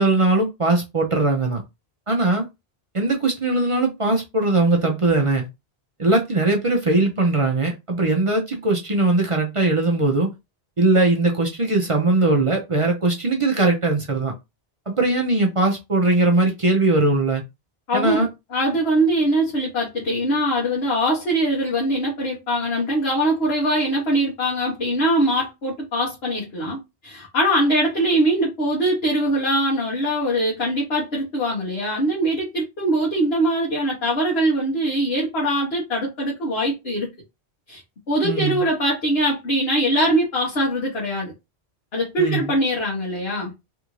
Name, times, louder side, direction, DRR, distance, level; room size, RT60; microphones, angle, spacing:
voice 1, 0.0-1.6 2.1-2.5 2.9-5.5 6.0-10.3 10.8-14.3 14.9-17.4 17.9-18.3 38.2-38.7 42.2-42.5, right 2 dB, 40° right, 0.6 m, -20 dB
voice 2, 17.9-26.8 27.0-37.1 37.7-37.8 38.1-41.3 41.9-43.5, right 1 dB, 80° left, 1.4 m, -22 dB
3.4 x 2.5 x 3.0 m
omnidirectional pair, 1.0 m